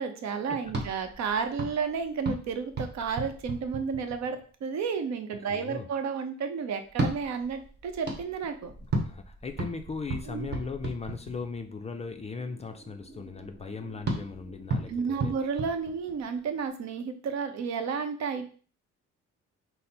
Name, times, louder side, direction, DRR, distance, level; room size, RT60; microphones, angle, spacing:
voice 1, 0.0-8.7 10.3-10.5 14.9-18.5, right 5 dB, 65° right, 7 dB, 0.7 m, -32 dB
sound 1, 0.6-4.5 6.8-11.7 14.0-16.5, right 2 dB, 35° right, 1.2 m, -35 dB
voice 2, 5.4-5.9 8.9-15.3, left 4 dB, 20° left, 6 dB, 0.4 m, -38 dB
sound 2, 11.1-17.0, right 2 dB, 10° right, 1.5 m, -54 dB
5.2 x 2.0 x 4.3 m, 0.41 s
cardioid pair, 120°, 29 cm